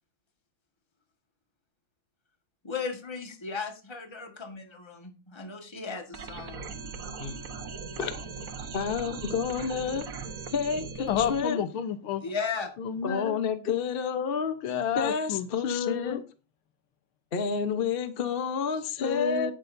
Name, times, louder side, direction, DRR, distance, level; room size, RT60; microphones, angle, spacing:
voice 1, 2.6-6.6 12.2-12.7, left 5 dB, 15° left, 1.3 m, -36 dB
sound 1, 6.1-11.4, right 5 dB, 50° right, 1.2 m, -39 dB
voice 2, 8.7-10.0 10.5-11.6 13.0-14.6 15.0-16.2 17.3-19.5, left 6 dB, 45° left, 0.7 m, -29 dB
voice 3, 11.1-12.2 12.8-13.4 14.6-16.2 19.0-19.5, left 8 dB, 80° left, 1.8 m, -30 dB
18.5 x 6.3 x 2.6 m
omnidirectional pair, 2.3 m